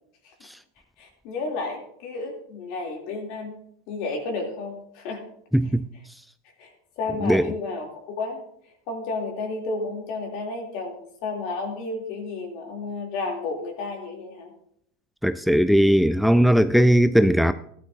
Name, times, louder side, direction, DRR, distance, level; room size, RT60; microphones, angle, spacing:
voice 1, 1.0-3.6 3.9-5.2 6.6-7.9 8.2-8.4 8.9-14.5, left 3 dB, 60° left, 2.9 m, -32 dB
voice 2, 5.5-5.9 7.2-7.5 15.2-17.5, equal, ahead, 0.4 m, -18 dB
15.0 x 11.0 x 2.7 m
hypercardioid pair, 100°, 0 cm